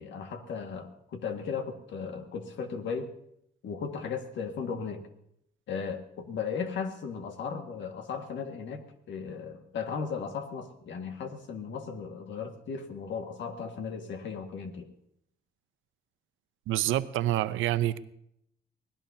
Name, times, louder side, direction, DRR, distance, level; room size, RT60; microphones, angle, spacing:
voice 1, 0.0-3.1 3.6-5.1 5.7-14.9, left 6 dB, 70° left, 5 dB, 1.8 m, -36 dB
voice 2, 16.7-18.0, right 13 dB, 90° right, 13 dB, 0.7 m, -27 dB
24.5 x 18.0 x 2.8 m, 0.75 s
cardioid pair, 90°, 20 cm